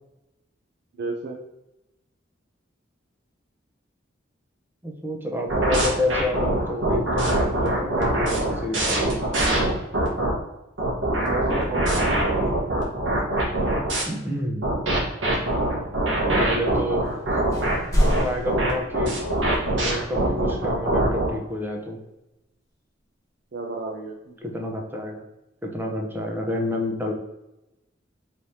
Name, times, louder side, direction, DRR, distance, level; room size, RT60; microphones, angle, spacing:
voice 1, 0.9-1.4 11.1-12.3 23.5-24.4, right 3 dB, 60° right, -1 dB, 0.6 m, -33 dB
voice 2, 4.8-9.2 14.1-14.6 16.4-17.1 18.2-19.2 19.7-22.0 24.4-25.3 25.6-27.1, left 1 dB, 10° right, 0 dB, 0.7 m, -29 dB
sound 1, 5.5-10.3 10.8-14.0 14.6-21.3, right 1 dB, 90° right, 1.3 m, -23 dB
sound 2, 17.0-17.2 17.5-19.6, equal, 20° left, 1.1 m, -26 dB
4.7 x 3.3 x 2.7 m, 0.93 s
head